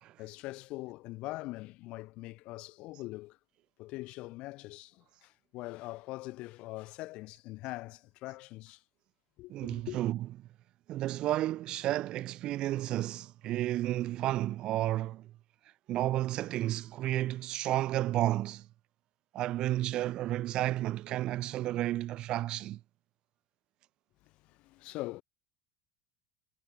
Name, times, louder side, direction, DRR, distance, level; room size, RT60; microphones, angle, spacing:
voice 1, 0.2-3.4 3.8-8.8 9.4-10.0 24.4-25.2, left 20 dB, 50° left, 5.6 m, -42 dB
voice 2, 9.5-10.3 10.9-15.3 15.9-18.7 19.3-22.8, right 14 dB, 40° right, 0.4 m, -32 dB
supercardioid pair, 145°, 2 cm